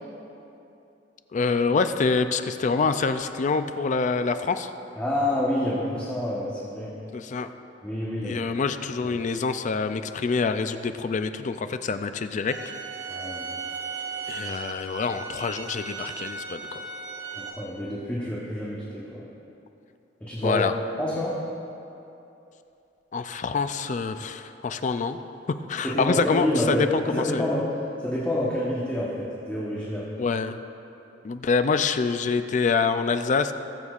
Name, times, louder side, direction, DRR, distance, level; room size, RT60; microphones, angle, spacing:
voice 1, 1.3-4.7 7.1-7.5 8.2-12.5 14.3-16.8 20.4-20.7 23.1-25.2 25.7-27.5 30.2-30.6 31.2-33.5, left 4 dB, 45° left, 10 dB, 0.4 m, -26 dB
voice 2, 5.0-6.9 7.8-8.4 9.0-9.1 13.1-13.5 17.3-19.3 20.2-20.6 21.0-21.4 25.8-26.8 27.2-27.7 28.0-30.0, left 1 dB, 10° left, -8 dB, 1.1 m, -28 dB
sound 1, 12.5-17.5, right 4 dB, 80° right, 1.4 m, -36 dB
20.5 x 7.0 x 2.4 m, 2.8 s
head